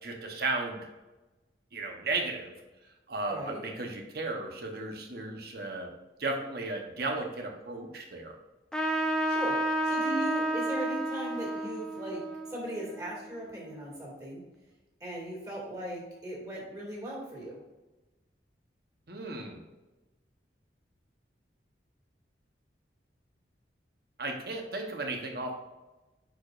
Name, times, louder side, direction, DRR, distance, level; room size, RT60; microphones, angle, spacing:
voice 1, 0.0-0.9 1.7-2.5 3.1-5.9 6.2-8.3 19.1-19.6 24.2-25.6, right 2 dB, 55° right, 2 dB, 1.1 m, -35 dB
voice 2, 3.3-3.6 9.3-12.2 12.5-14.4 15.0-17.6, right 1 dB, 20° right, -5 dB, 2.3 m, -38 dB
Trumpet, 8.7-13.7, right 1 dB, 5° left, 0.6 m, -31 dB
9.3 x 4.9 x 2.6 m, 1.1 s
head